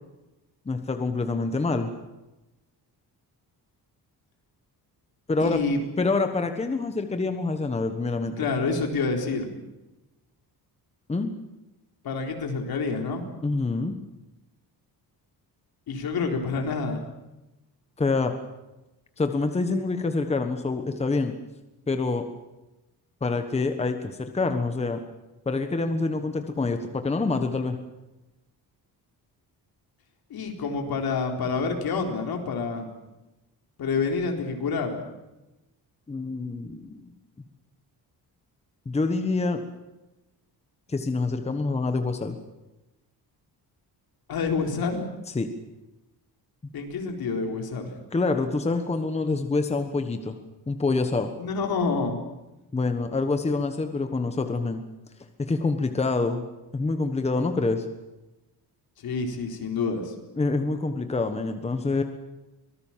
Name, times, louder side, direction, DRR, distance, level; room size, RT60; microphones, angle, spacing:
voice 1, 0.7-1.9 5.3-5.6 6.0-8.5 11.1-11.3 13.4-13.9 18.0-18.3 19.2-21.3 21.9-22.2 23.2-25.0 25.4-27.8 36.1-37.1 38.8-39.6 40.9-42.4 45.3-45.5 48.1-50.4 50.7-51.3 52.7-54.8 55.4-56.4 56.7-57.8 60.4-62.0, left 3 dB, 15° left, 7 dB, 1.3 m, -26 dB
voice 2, 5.4-5.8 8.4-9.5 12.0-13.3 15.9-17.0 30.3-32.9 33.8-35.0 44.3-45.0 46.7-47.9 51.4-52.2 59.0-60.1, left 4 dB, 65° left, 3 dB, 4.1 m, -28 dB
25.0 x 19.0 x 7.4 m, 1.0 s
wide cardioid pair, 170°, 39 cm